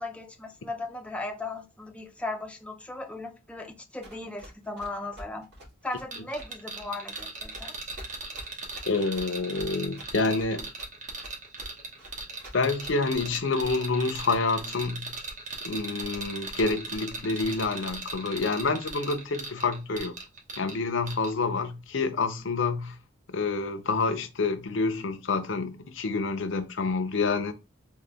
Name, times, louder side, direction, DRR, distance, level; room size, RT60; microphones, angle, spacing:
voice 1, 0.0-5.5 5.8-7.7, left 2 dB, 5° left, 0.5 m, -37 dB
Run, 4.0-14.1, equal, 55° right, 2.0 m, -47 dB
sound 1, 6.1-20.8 21.1-21.3, right 3 dB, 40° right, 1.0 m, -38 dB
voice 2, 8.9-10.7 12.5-15.1 15.6-20.1 20.6-23.0 23.3-27.5, left 3 dB, 65° left, 0.6 m, -28 dB
3.9 x 2.3 x 3.4 m
head